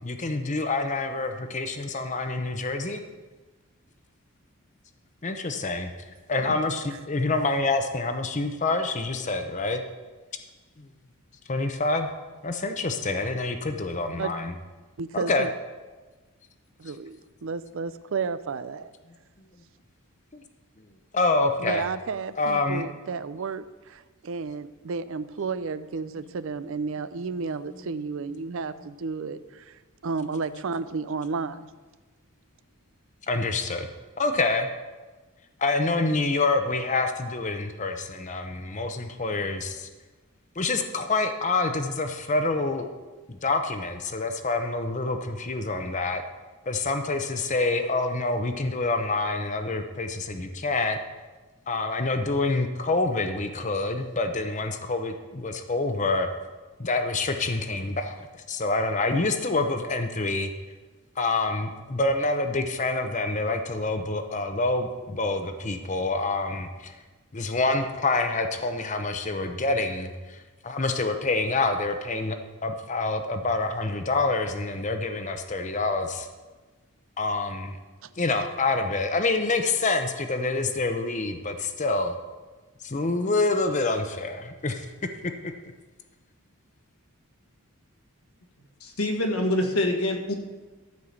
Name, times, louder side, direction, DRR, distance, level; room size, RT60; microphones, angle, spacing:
voice 1, 0.0-3.0 5.2-5.9 6.3-9.8 11.5-12.1 12.4-14.5 15.1-15.5 21.1-21.8 22.4-22.9 33.3-33.9 34.2-34.7 35.6-39.9 40.6-42.9 43.3-46.2 46.7-51.0 51.7-56.3 56.8-60.5 61.2-67.0 67.3-76.3 77.2-77.7 78.2-82.2 82.8-84.9 85.4-85.5, left 3 dB, 35° left, 7 dB, 0.8 m, -27 dB
voice 2, 15.0-15.5 16.8-18.9 21.6-29.7 30.0-31.6, right 4 dB, 60° right, 14 dB, 0.5 m, -32 dB
voice 3, 88.8-90.3, left 1 dB, 75° left, 3 dB, 1.6 m, -25 dB
13.5 x 4.9 x 7.2 m, 1.3 s
head